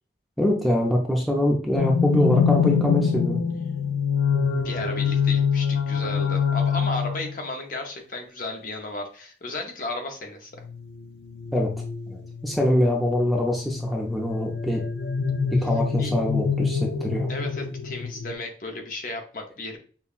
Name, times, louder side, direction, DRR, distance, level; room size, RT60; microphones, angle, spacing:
voice 1, 0.4-3.4 11.5-11.7 12.1-14.8 15.5-17.3, left 1 dB, ahead, 0 dB, 0.5 m, -24 dB
sound 1, 1.8-7.4 10.6-18.3, left 6 dB, 70° left, 0.3 m, -25 dB
voice 2, 4.6-10.5 16.0-16.1 17.3-19.8, left 2 dB, 50° left, 3 dB, 0.7 m, -34 dB
5.3 x 2.2 x 2.4 m, 0.39 s
head